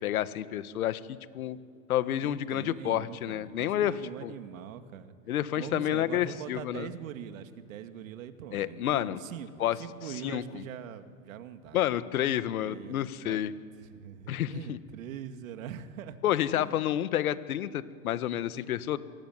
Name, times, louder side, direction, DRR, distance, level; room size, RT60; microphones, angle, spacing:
voice 1, 0.0-1.6 1.9-4.3 5.3-6.9 8.5-9.2 9.6-9.8 10.2-10.6 11.7-13.5 14.3-14.8 16.2-19.0, left 12 dB, 90° left, 13 dB, 1.6 m, -29 dB
voice 2, 2.2-5.1 5.6-9.5 9.8-11.8 12.6-13.5 13.8-16.2 16.5-16.7, right 9 dB, 70° right, 8 dB, 2.3 m, -42 dB
27.5 x 22.5 x 9.5 m, 2.3 s
supercardioid pair, 165°, 42 cm